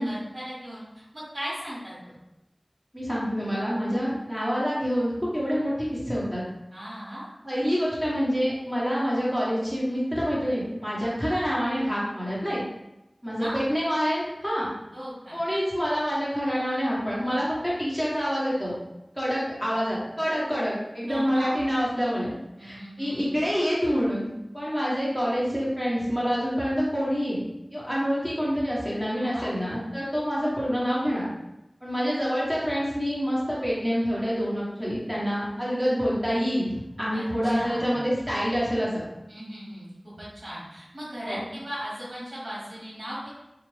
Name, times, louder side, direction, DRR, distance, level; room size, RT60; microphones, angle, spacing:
voice 1, 0.0-2.2 6.7-7.3 13.4-13.6 14.9-15.4 21.1-21.5 22.6-23.3 29.2-29.5 37.1-38.1 39.3-43.3, equal, 90° right, -9 dB, 1.3 m, -38 dB
voice 2, 2.9-6.4 7.4-12.6 13.2-14.7 15.3-18.7 19.1-22.3 22.6-27.4 27.7-31.3 31.8-39.0 41.2-41.4, equal, 10° right, -8 dB, 1.3 m, -27 dB
2.5 x 2.4 x 3.2 m, 0.91 s
wide cardioid pair, 45°, 0 cm